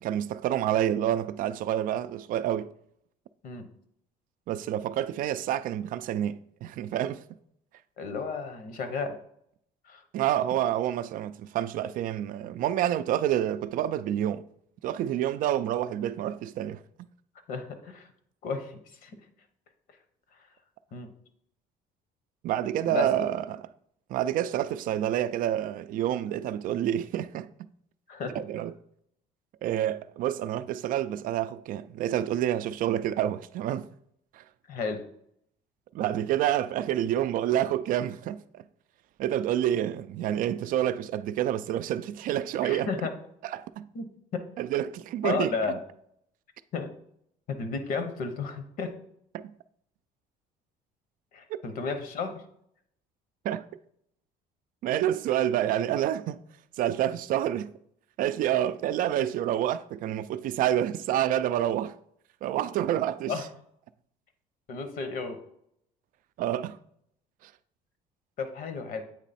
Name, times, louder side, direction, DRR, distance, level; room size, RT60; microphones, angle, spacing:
voice 1, 0.0-2.7 4.5-7.2 10.1-14.4 14.8-16.8 22.4-23.6 24.1-27.5 28.4-28.7 29.6-33.9 34.3-34.4 35.9-38.6 39.2-42.9 43.5-43.9 44.6-45.5 51.5-51.6 53.4-53.6 54.8-56.4 56.8-57.7 58.2-61.9 62.4-63.3 66.4-66.8 67.4-67.5, right 11 dB, 55° right, 0.4 m, -28 dB
voice 2, 8.0-9.2 9.8-10.0 17.5-18.1 18.4-19.2 20.3-20.5 20.9-21.1 22.8-23.3 28.1-28.4 34.7-35.0 42.6-43.1 43.9-44.1 44.3-44.5 45.2-45.8 46.7-46.9 47.5-48.9 51.3-52.4 63.3-63.5 64.7-65.4 68.4-69.0, left 4 dB, 60° left, 0.9 m, -33 dB
8.1 x 3.0 x 4.2 m
cardioid pair, 110°, 16 cm